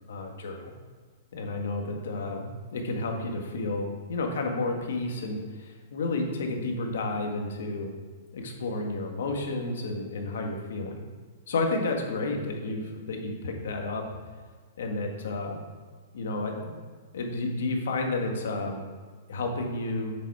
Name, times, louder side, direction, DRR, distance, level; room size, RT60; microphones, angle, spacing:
voice 1, 0.1-0.7 1.3-7.9 8.3-11.0 11.5-14.1 14.8-15.6 16.1-16.8 17.1-18.8 19.3-20.2, left 2 dB, 75° left, 2 dB, 1.8 m, -31 dB
8.1 x 7.0 x 4.9 m, 1.6 s
hypercardioid pair, 165°, 0 cm